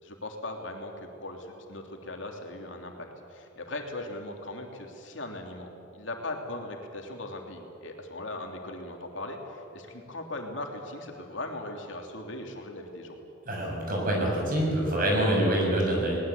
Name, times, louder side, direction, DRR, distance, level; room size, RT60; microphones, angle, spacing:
voice 1, 0.0-13.2, left 2 dB, 65° left, 2 dB, 2.9 m, -39 dB
voice 2, 13.4-16.2, right 1 dB, 45° right, -1 dB, 6.6 m, -26 dB
21.0 x 19.5 x 8.4 m, 2.8 s
head